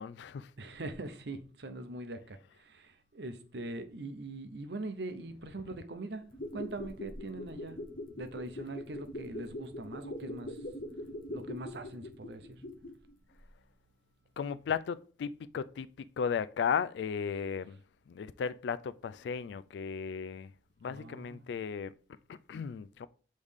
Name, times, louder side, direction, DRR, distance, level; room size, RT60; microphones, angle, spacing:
voice 1, 0.0-0.5 14.4-15.9 16.2-17.8 18.1-20.5 20.8-21.9 22.5-23.1, left 6 dB, 75° left, 0.3 m, -35 dB
voice 2, 0.6-6.2 6.5-7.8 8.2-10.6 11.3-12.6 20.8-21.4, right 2 dB, 70° right, 0.7 m, -42 dB
sound 1, 6.2-13.1 13.4-13.5, left 1 dB, 50° left, 0.8 m, -42 dB
8.2 x 3.2 x 3.6 m
head